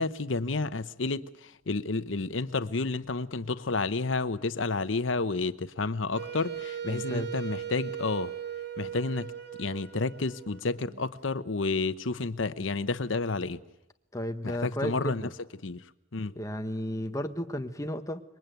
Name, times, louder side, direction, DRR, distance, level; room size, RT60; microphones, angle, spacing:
voice 1, 0.0-8.3 8.8-9.3 9.6-13.6 14.4-15.3 15.6-15.9 16.1-16.3, left 3 dB, 80° left, 0.9 m, -30 dB
Wind instrument woodwind instrument, 6.1-11.1, right 9 dB, 55° right, 1.7 m, -38 dB
voice 2, 6.9-7.3 14.1-15.3 16.3-18.2, equal, 15° left, 1.2 m, -33 dB
27.0 x 22.5 x 9.3 m
head